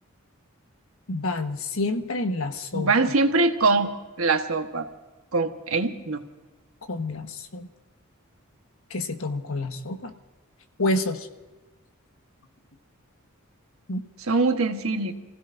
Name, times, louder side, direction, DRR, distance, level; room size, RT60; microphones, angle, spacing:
voice 1, 1.1-2.9 6.9-7.7 8.9-10.1 10.8-11.3 13.9-14.0, left 2 dB, 75° left, 6 dB, 1.3 m, -28 dB
voice 2, 2.7-3.9 4.2-4.9 5.3-6.2 14.3-15.1, right 3 dB, 75° right, 6 dB, 1.3 m, -23 dB
29.5 x 16.0 x 2.6 m, 1.2 s
head